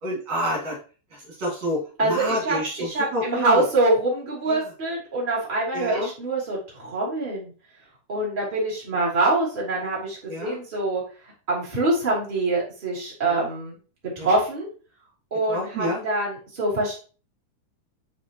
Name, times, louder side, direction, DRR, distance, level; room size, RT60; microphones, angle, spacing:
voice 1, 0.0-0.7 1.4-3.6 4.5-4.6 5.7-6.1 10.3-10.6 13.3-13.5 14.2-14.3 15.5-16.0, equal, 60° right, -3 dB, 3.4 m, -28 dB
voice 2, 2.0-7.5 8.1-11.0 11.5-13.8 14.0-14.7 15.3-16.9, right 2 dB, 15° right, -6 dB, 2.6 m, -25 dB
9.3 x 4.5 x 2.9 m, 0.37 s
omnidirectional pair, 3.7 m